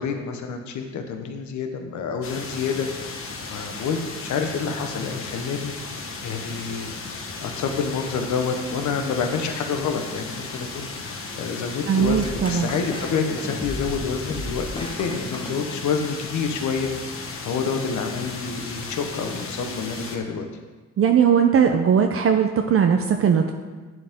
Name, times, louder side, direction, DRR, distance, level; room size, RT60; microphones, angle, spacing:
voice 1, 0.0-3.2 3.5-5.7 6.2-6.9 7.4-20.5, left 5 dB, 70° left, 4 dB, 1.2 m, -28 dB
sound 1, 2.2-20.2, left 3 dB, 45° left, 1.4 m, -35 dB
voice 2, 11.9-12.7 21.0-23.5, right 7 dB, 50° right, 5 dB, 0.7 m, -19 dB
sound 2, 12.0-16.2, left 1 dB, 15° left, 1.2 m, -35 dB
11.0 x 8.2 x 3.7 m, 1.3 s
cardioid pair, 90°, 30 cm